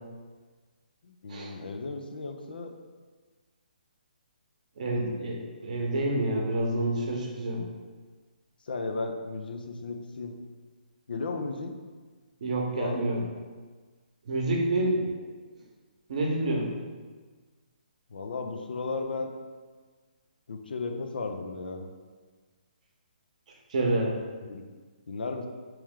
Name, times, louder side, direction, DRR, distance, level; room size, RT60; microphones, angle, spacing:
voice 1, 1.0-2.7 8.7-10.4 11.1-11.8 12.8-13.0 15.0-15.2 18.1-19.3 20.5-21.9 24.4-24.6 25.1-25.5, left 3 dB, 80° left, 5 dB, 0.5 m, -35 dB
voice 2, 4.8-7.6 12.4-13.2 14.3-15.1 16.1-16.7 23.7-24.2, right 1 dB, 50° right, -1 dB, 0.8 m, -28 dB
3.1 x 3.0 x 3.6 m, 1.4 s
hypercardioid pair, 165°, 5 cm